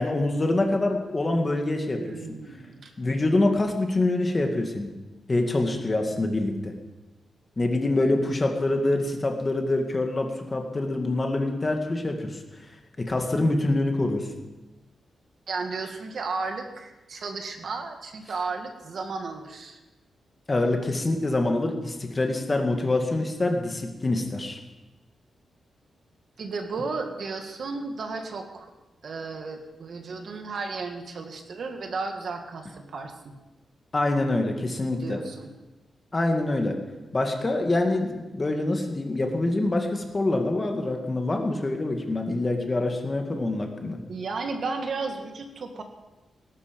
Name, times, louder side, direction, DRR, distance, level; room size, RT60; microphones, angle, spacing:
voice 1, 0.0-2.0 3.0-4.9 5.3-6.7 7.6-12.4 13.1-14.3 20.5-24.6 33.9-35.2 36.1-36.8 37.1-44.0, left 2 dB, 25° left, 3 dB, 1.9 m, -25 dB
voice 2, 1.9-2.9 15.5-19.8 26.4-28.7 29.0-33.4 35.0-35.5 44.1-45.8, right 4 dB, 50° right, 5 dB, 1.7 m, -34 dB
18.5 x 12.0 x 5.3 m, 1.1 s
wide cardioid pair, 160°, 0 cm